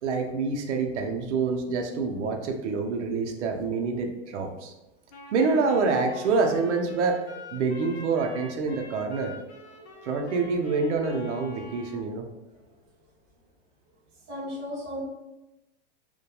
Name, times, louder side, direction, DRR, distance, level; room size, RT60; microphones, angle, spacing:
voice 1, 0.0-4.7 5.3-7.2 7.5-9.3 10.0-12.3, right 4 dB, 75° right, 3 dB, 0.6 m, -26 dB
Wind instrument woodwind instrument, 5.1-12.1, left 3 dB, 70° left, 0.7 m, -45 dB
voice 2, 9.7-10.0 12.6-12.7 14.3-15.0, left 1 dB, 15° right, -9 dB, 0.4 m, -36 dB
2.2 x 2.2 x 2.8 m, 0.99 s
supercardioid pair, 175°, 35 cm